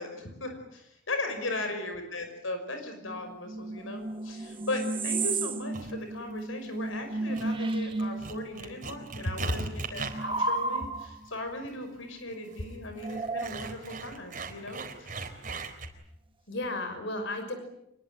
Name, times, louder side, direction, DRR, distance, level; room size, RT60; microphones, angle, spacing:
voice 1, 0.0-15.2, left 2 dB, 80° left, 6 dB, 5.6 m, -38 dB
voice 2, 1.3-1.6 9.2-9.5 16.5-17.5, left 1 dB, 60° left, 7 dB, 5.9 m, -33 dB
sound 1, 3.0-8.6 8.9-11.3 13.0-14.0, right 2 dB, 25° right, 1.4 m, -33 dB
sound 2, 5.7-6.0 6.7-7.0 7.3-15.9, right 4 dB, 40° right, 4.0 m, -40 dB
27.0 x 21.5 x 9.0 m, 0.80 s
head